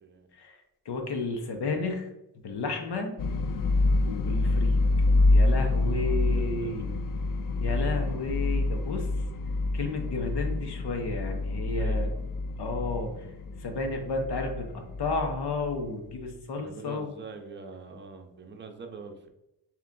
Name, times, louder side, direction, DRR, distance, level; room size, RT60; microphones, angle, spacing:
voice 1, 0.3-2.1 2.4-3.2 4.1-4.8 5.3-6.9 7.6-9.1 9.7-12.1 12.6-13.3 13.6-17.1, left 3 dB, 70° left, 4 dB, 0.9 m, -32 dB
sound 1, 3.2-16.1, left 2 dB, 55° left, 0.5 m, -27 dB
voice 2, 5.9-6.9 7.6-8.2 11.8-12.1 16.6-19.3, right 4 dB, 25° right, 4 dB, 0.6 m, -44 dB
3.4 x 3.0 x 3.8 m, 0.89 s
cardioid pair, 65°, 41 cm